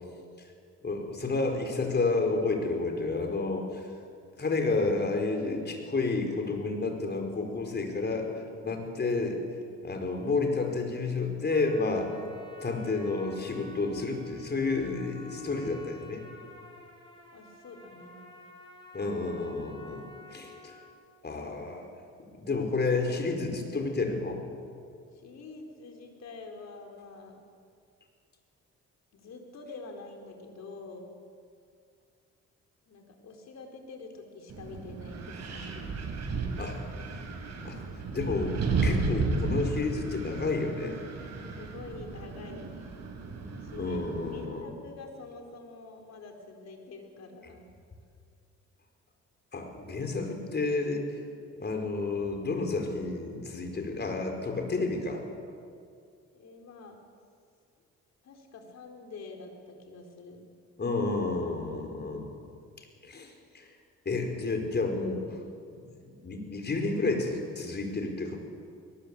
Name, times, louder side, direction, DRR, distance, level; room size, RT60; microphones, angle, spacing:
voice 1, 0.8-3.9 4.4-8.3 8.6-9.4 9.8-12.1 12.6-16.2 18.9-20.8 21.2-21.9 22.2-24.5 36.6-36.8 37.1-37.2 37.6-37.8 38.1-41.0 43.8-44.7 49.5-51.1 51.5-55.2 60.8-62.3 62.8-63.8 64.0-65.3 66.0-68.4, left 3 dB, 35° left, 4 dB, 4.8 m, -30 dB
Trumpet, 11.5-21.0, left 2 dB, 15° left, 6.1 m, -51 dB
voice 2, 17.3-18.2 25.1-27.5 29.1-31.1 32.9-35.9 41.6-43.0 43.6-44.0 44.3-47.7 56.3-57.0 58.2-60.4, left 3 dB, 60° left, 3 dB, 4.5 m, -46 dB
Wind, 34.5-44.4, right 4 dB, 60° right, 4.6 m, -33 dB
21.5 x 20.0 x 8.6 m, 2.3 s
cardioid pair, 90°, 30 cm